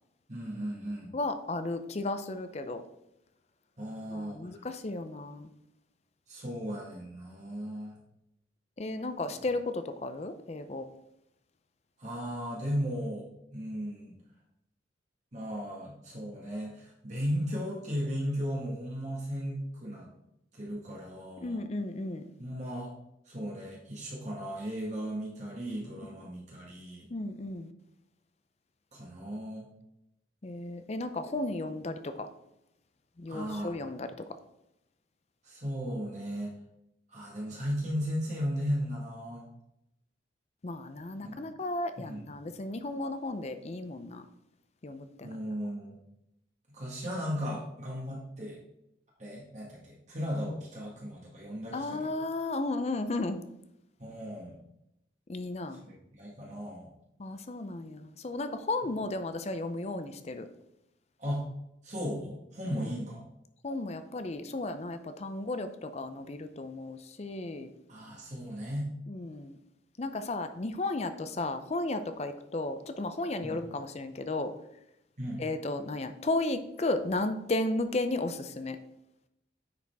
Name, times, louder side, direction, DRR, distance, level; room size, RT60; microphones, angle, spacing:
voice 1, 0.3-1.1 3.8-4.6 6.3-8.0 9.3-9.4 12.0-13.3 13.5-14.1 15.3-20.1 20.5-21.6 22.4-22.9 23.3-27.1 28.9-29.7 33.3-33.7 35.4-36.5 37.1-39.4 41.2-41.4 42.0-42.2 45.2-46.0 46.7-48.6 49.2-52.2 54.0-54.6 55.8-56.9 61.2-61.4 61.8-63.2 67.9-68.9 73.4-73.6 75.2-75.4, equal, 40° right, -4 dB, 1.6 m, -36 dB
voice 2, 1.1-2.8 4.1-5.5 8.8-10.9 21.4-22.2 27.1-27.7 30.4-32.3 33.2-34.1 40.6-44.2 44.8-45.3 51.7-53.4 55.3-55.8 57.2-60.5 62.7-62.9 63.6-67.7 69.1-69.6 70.0-74.5 75.4-78.8, left 2 dB, 35° left, 9 dB, 0.5 m, -34 dB
9.4 x 5.1 x 3.5 m, 0.83 s
head